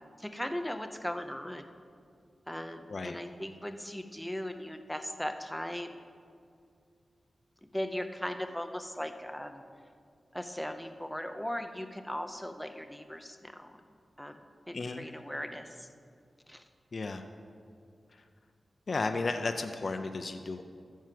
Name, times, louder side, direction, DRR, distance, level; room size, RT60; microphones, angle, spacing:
voice 1, 0.0-1.6 2.5-6.0 7.7-9.6 10.3-13.8 14.2-14.4 14.7-15.9 16.5-16.6, left 1 dB, 5° left, 6 dB, 0.7 m, -38 dB
voice 2, 14.7-15.1 16.9-17.2 18.1-18.2 18.9-20.6, left 3 dB, 50° left, 6 dB, 0.5 m, -34 dB
14.0 x 4.7 x 7.6 m, 2.3 s
wide cardioid pair, 100°, 0 cm